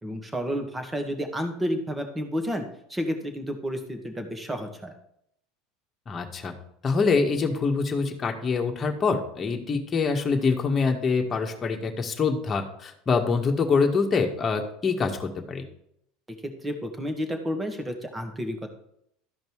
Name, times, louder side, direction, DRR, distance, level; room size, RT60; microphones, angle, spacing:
voice 1, 0.0-4.9 16.6-18.7, equal, 10° right, 5 dB, 1.9 m, -31 dB
voice 2, 6.1-6.5 6.8-15.6, left 4 dB, 30° left, 2 dB, 1.8 m, -25 dB
13.5 x 5.2 x 4.8 m, 0.73 s
hypercardioid pair, 90°, 0 cm